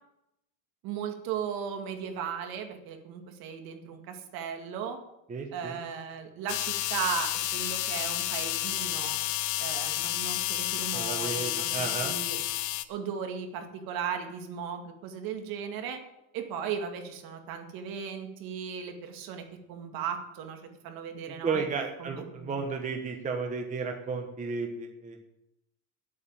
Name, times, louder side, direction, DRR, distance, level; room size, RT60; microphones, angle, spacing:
voice 1, 0.8-5.0 5.5-9.2 9.6-12.4 12.9-16.0 16.3-21.7 22.0-22.6, right 7 dB, 55° right, 5 dB, 2.3 m, -36 dB
voice 2, 5.3-5.8 10.9-12.2 21.4-25.2, right 4 dB, 15° right, 3 dB, 1.1 m, -33 dB
sound 1, 6.5-12.9, left 15 dB, 45° left, 0.7 m, -31 dB
9.9 x 8.7 x 8.6 m, 0.85 s
cardioid pair, 150°, 42 cm